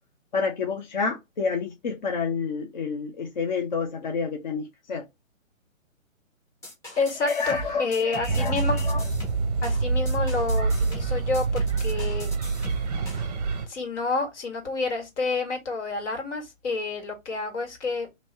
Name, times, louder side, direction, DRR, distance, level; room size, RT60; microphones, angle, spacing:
voice 1, 0.3-5.1 7.2-9.0, left 5 dB, 35° left, 0.5 m, -29 dB
sound 1, 6.6-13.3, right 1 dB, 10° left, 0.8 m, -39 dB
voice 2, 7.0-8.8 9.6-12.3 13.7-18.1, left 3 dB, 55° left, 1.9 m, -29 dB
sound 2, 8.3-13.7, right 3 dB, 30° right, 0.7 m, -26 dB
3.1 x 2.7 x 4.1 m
hypercardioid pair, 145°, 40 cm